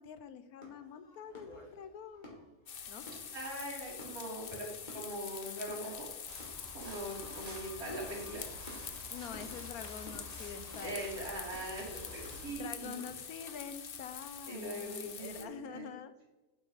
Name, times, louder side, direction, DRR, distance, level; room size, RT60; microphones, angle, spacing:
voice 1, 0.0-2.4 2.9-3.0 9.1-11.0 12.6-16.1, left 7 dB, 75° left, 11 dB, 1.2 m, -46 dB
sound 1, 0.6-13.3, left 1 dB, 30° left, 2.2 m, -55 dB
sound 2, 2.7-15.4, left 7 dB, 50° left, 0.7 m, -46 dB
voice 2, 3.3-6.1 6.7-8.5 10.8-13.0 14.5-15.9, right 1 dB, 65° right, -5 dB, 3.6 m, -42 dB
sound 3, 6.3-12.5, equal, 25° right, 1.5 m, -50 dB
9.1 x 8.0 x 4.0 m, 1.1 s
omnidirectional pair, 1.6 m